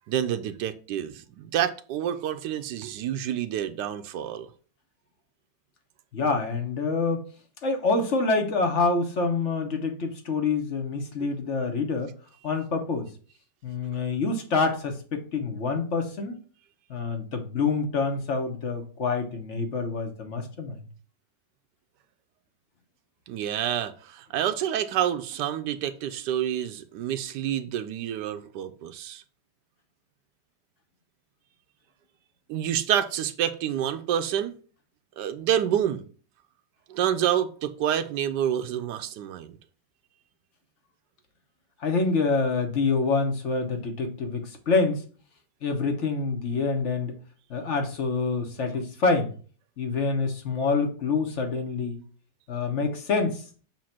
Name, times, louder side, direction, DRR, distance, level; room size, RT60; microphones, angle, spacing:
voice 1, 0.0-4.5 23.3-29.2 32.5-34.5 35.2-36.1 36.9-39.6, right 10 dB, 75° right, 1.2 m, -28 dB
voice 2, 6.1-7.2 7.6-12.1 12.4-13.1 13.6-16.4 16.9-20.8 41.8-45.0 45.6-47.2 47.5-49.3 49.8-52.0 52.5-53.4, left 4 dB, 45° left, 1.2 m, -26 dB
7.4 x 2.5 x 5.7 m
omnidirectional pair, 1.9 m